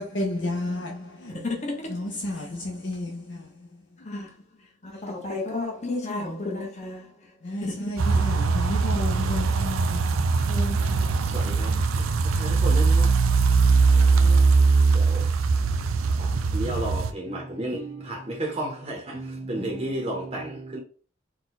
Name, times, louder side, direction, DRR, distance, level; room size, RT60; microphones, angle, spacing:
voice 1, 0.0-1.5 1.9-4.1 4.9-5.0 7.4-10.5, left 1 dB, 60° left, 0.7 m, -32 dB
voice 2, 1.3-2.1 4.0-4.3 4.8-7.3 7.6-7.8 8.1-8.2 10.5-11.1 14.2-14.4, left 2 dB, 35° left, 1.0 m, -33 dB
sound 1, 8.0-17.1, right 4 dB, 75° right, 0.4 m, -21 dB
voice 3, 11.3-11.7 12.4-13.1 14.9-15.3 16.2-20.8, right 1 dB, 25° right, 0.8 m, -32 dB
4.2 x 2.3 x 4.1 m
head